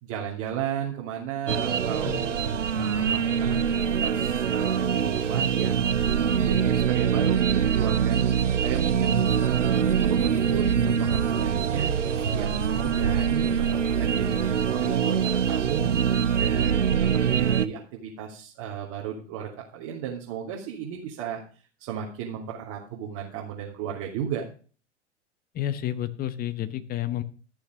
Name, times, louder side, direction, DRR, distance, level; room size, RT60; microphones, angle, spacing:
voice 1, 0.0-2.3 2.7-3.6 4.0-8.2 8.6-11.9 12.3-13.5 14.0-16.0 16.4-17.0 17.2-21.4 21.8-24.4, right 8 dB, 40° right, -3 dB, 2.8 m, -34 dB
sound 1, 1.5-17.7, right 7 dB, 80° right, 0.8 m, -24 dB
voice 2, 25.5-27.2, left 12 dB, 25° left, 14 dB, 1.0 m, -30 dB
13.5 x 6.9 x 5.3 m, 0.39 s
figure-of-eight pair, 100°, 36 cm